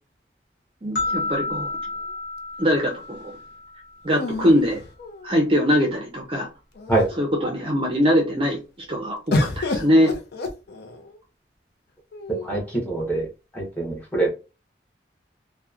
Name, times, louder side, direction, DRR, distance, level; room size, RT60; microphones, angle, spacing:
voice 1, 0.8-1.7 2.6-3.2 4.0-4.8 5.2-6.5 7.2-8.6 8.9-10.1, equal, 30° right, 0 dB, 0.5 m, -21 dB
sound 1, 1.0-4.1, left 2 dB, 75° left, 1.0 m, -30 dB
sound 2, 1.0-2.1 4.1-5.6 6.4-6.5 6.8-7.3 9.3-11.2 12.1-12.8, left 2 dB, 60° left, 0.4 m, -30 dB
voice 2, 12.3-13.3 13.5-14.3, right 2 dB, 10° left, -3 dB, 0.8 m, -24 dB
2.8 x 2.1 x 2.3 m, 0.31 s
head